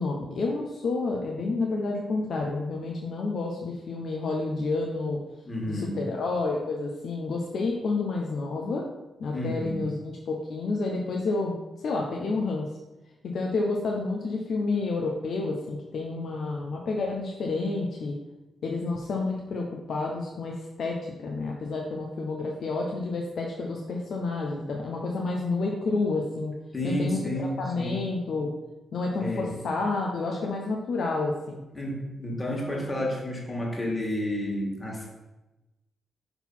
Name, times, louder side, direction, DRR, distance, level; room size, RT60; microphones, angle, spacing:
voice 1, 0.0-5.2 5.7-8.8 9.2-11.5 11.8-12.7 13.2-18.2 18.6-26.5 26.8-28.5 28.9-31.6 32.7-32.8, left 3 dB, 70° left, 0 dB, 0.7 m, -29 dB
voice 2, 5.5-6.0 9.3-9.8 26.7-28.0 29.2-29.5 31.7-35.1, left 1 dB, 20° left, -2 dB, 2.0 m, -31 dB
4.6 x 4.0 x 5.5 m, 1.0 s
cardioid pair, 65°, 0 cm